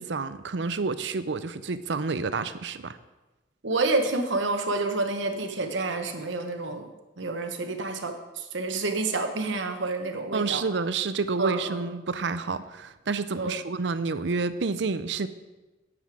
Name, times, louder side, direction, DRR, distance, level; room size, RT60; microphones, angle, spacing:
voice 1, 0.0-3.0 10.3-15.3, right 4 dB, 70° right, 13 dB, 0.6 m, -29 dB
voice 2, 3.6-6.9 7.2-10.6 11.4-11.8 13.3-13.6, right 3 dB, 85° right, 5 dB, 1.2 m, -29 dB
9.5 x 9.4 x 4.9 m, 1.1 s
head